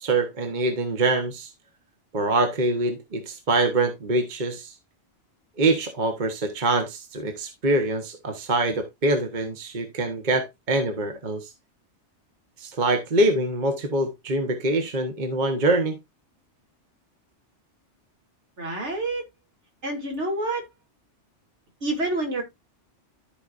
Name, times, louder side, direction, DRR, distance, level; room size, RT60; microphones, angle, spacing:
voice 1, 0.0-1.5 2.1-4.7 5.6-11.5 12.6-16.0, right 2 dB, 40° right, 1.2 m, -24 dB
voice 2, 18.6-19.2 19.8-20.7 21.8-22.4, right 2 dB, 70° right, 2.8 m, -27 dB
13.5 x 4.8 x 2.5 m
omnidirectional pair, 1.2 m